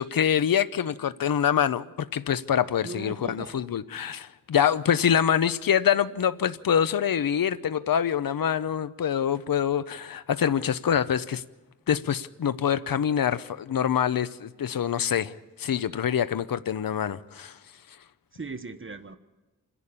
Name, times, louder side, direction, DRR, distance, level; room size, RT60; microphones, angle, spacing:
voice 1, 0.0-11.4 11.9-17.6, left 9 dB, 85° left, 0.7 m, -25 dB
voice 2, 2.8-3.7 5.4-5.5 18.3-19.2, right 3 dB, 35° right, 1.2 m, -39 dB
27.5 x 11.0 x 8.7 m
wide cardioid pair, 80°, 34 cm